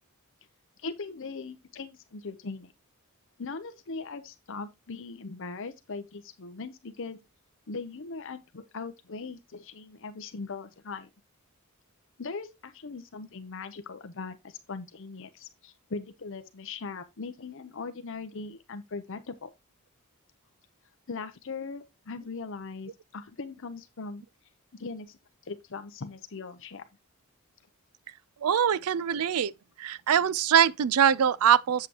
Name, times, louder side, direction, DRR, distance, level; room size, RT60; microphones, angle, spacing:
voice 1, 0.8-2.7 3.4-7.2 7.7-11.1 12.2-19.5 21.1-24.2 24.7-25.2 25.4-26.8, left 4 dB, 60° left, 0.7 m, -40 dB
voice 2, 28.4-29.5 29.8-31.9, right 8 dB, 75° right, 0.4 m, -23 dB
7.7 x 7.4 x 2.9 m
head